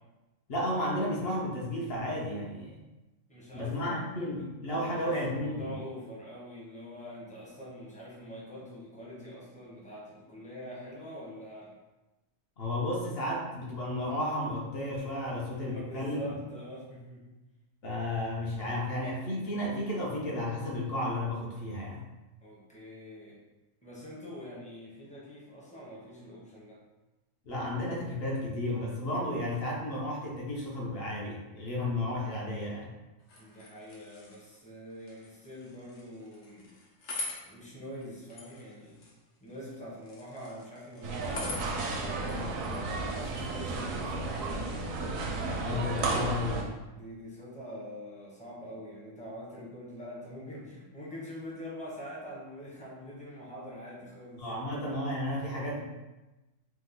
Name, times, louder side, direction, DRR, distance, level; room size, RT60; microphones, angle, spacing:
voice 1, 0.5-2.8 3.5-5.7 12.6-16.4 17.8-22.0 27.5-32.9 45.6-46.7 54.4-55.9, left 1 dB, 60° left, -3 dB, 0.7 m, -33 dB
voice 2, 3.3-11.7 15.6-17.3 22.4-23.4 23.8-26.8 33.4-36.7 37.4-39.0 39.4-44.9 46.9-54.8, equal, 10° left, -6 dB, 0.3 m, -45 dB
sound 1, 33.2-45.6, left 2 dB, 80° left, 1.1 m, -46 dB
sound 2, 41.0-46.6, right 3 dB, 80° right, 1.0 m, -33 dB
3.1 x 2.0 x 3.5 m, 1.1 s
omnidirectional pair, 1.4 m